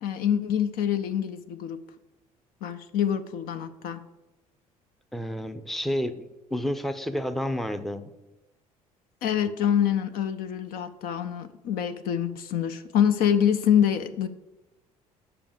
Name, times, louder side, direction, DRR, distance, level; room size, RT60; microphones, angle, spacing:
voice 1, 0.0-1.8 2.6-4.0 9.2-14.3, left 9 dB, 55° left, 0.6 m, -25 dB
voice 2, 5.1-8.1, equal, ahead, 0.6 m, -30 dB
7.0 x 5.5 x 6.6 m
figure-of-eight pair, 55°, 18 cm